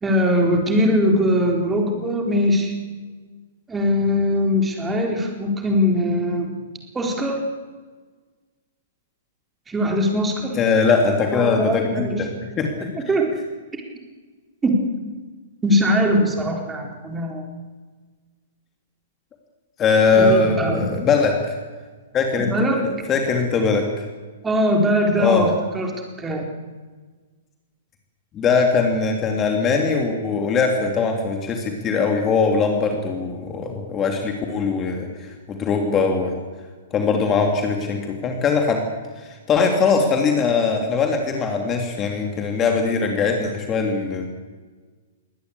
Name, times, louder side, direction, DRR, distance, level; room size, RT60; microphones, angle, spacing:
voice 1, 0.0-2.7 3.7-6.5 6.9-7.4 9.7-10.6 11.3-12.2 13.1-13.3 14.6-14.8 15.6-17.4 20.1-21.1 22.5-22.9 24.4-25.9 26.2-26.5, equal, 10° right, 2 dB, 4.2 m, -21 dB
voice 2, 10.6-12.3 12.6-12.9 19.8-21.4 22.1-22.5 23.1-23.8 25.2-25.5 28.3-35.1 35.5-36.3 36.9-38.8 39.5-44.3, left 4 dB, 20° left, 3 dB, 3.1 m, -20 dB
22.0 x 19.0 x 8.5 m, 1.4 s
figure-of-eight pair, 110°, 0 cm